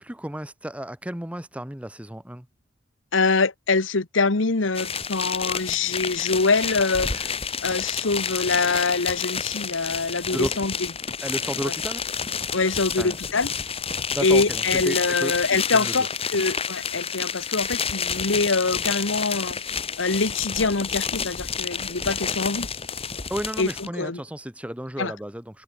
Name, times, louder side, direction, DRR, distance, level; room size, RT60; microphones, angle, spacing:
voice 1, 0.0-2.5 10.3-10.7 11.2-12.0 13.0-13.2 14.1-15.9 23.3-25.6, equal, 5° right, 1.0 m, -33 dB
voice 2, 3.1-7.3 7.6-10.7 11.6-11.7 12.5-13.5 14.2-19.6 20.0-22.7 23.6-24.2 25.0-25.1, left 3 dB, 75° left, 1.3 m, -24 dB
sound 1, 4.7-23.9, left 6 dB, 30° left, 3.3 m, -30 dB
head